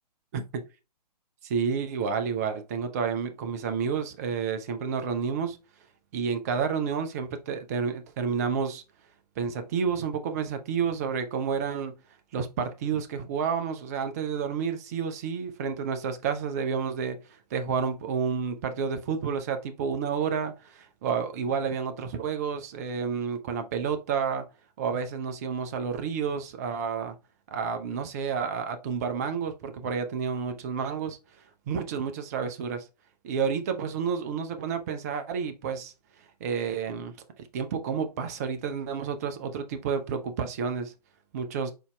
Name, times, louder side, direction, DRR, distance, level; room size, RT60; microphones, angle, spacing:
voice 1, 1.4-5.6 6.1-8.8 9.4-12.0 12.3-17.2 17.5-24.5 24.8-27.2 27.5-31.2 31.7-32.8 33.2-35.9 36.4-37.1 37.5-40.9 41.3-41.7, right 6 dB, 25° right, 0.5 m, -30 dB
4.5 x 4.1 x 2.2 m
figure-of-eight pair, 130°, 21 cm